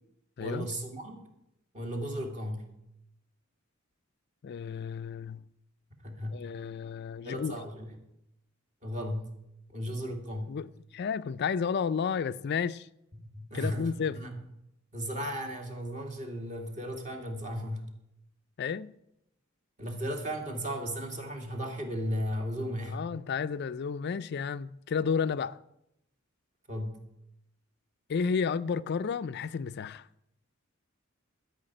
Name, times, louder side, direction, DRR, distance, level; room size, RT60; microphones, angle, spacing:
voice 1, 0.4-1.2 1.7-2.7 6.0-6.4 7.2-8.0 8.8-9.3 9.7-10.5 13.3-14.4 14.9-17.8 19.8-23.0 26.7-27.0, equal, 35° right, 2.2 m, -35 dB
voice 2, 4.4-5.4 6.3-7.6 10.5-10.7 10.9-12.9 13.5-14.2 18.6-18.9 22.9-25.6 28.1-30.1, left 6 dB, 55° left, 0.4 m, -32 dB
12.5 x 5.7 x 8.9 m
head